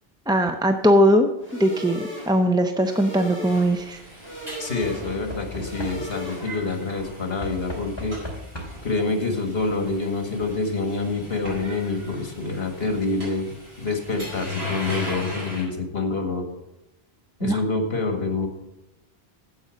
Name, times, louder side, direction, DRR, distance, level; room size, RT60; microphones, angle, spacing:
voice 1, 0.3-1.3 1.6-4.0 17.4-17.6, equal, 5° right, 6 dB, 0.4 m, -20 dB
sound 1, 1.4-6.8, equal, 25° right, 2.8 m, -37 dB
Knock / Wood, 2.7-3.1 4.8-6.4 7.4-9.0 10.0-10.1 10.4-10.5, left 1 dB, 25° left, 2.5 m, -37 dB
sound 2, 3.4-15.6, left 2 dB, 80° right, 5.1 m, -38 dB
voice 2, 4.6-8.2 8.8-16.4 17.4-18.5, left 3 dB, 70° left, 4 dB, 2.0 m, -27 dB
9.6 x 7.9 x 6.3 m, 0.91 s
omnidirectional pair, 1.0 m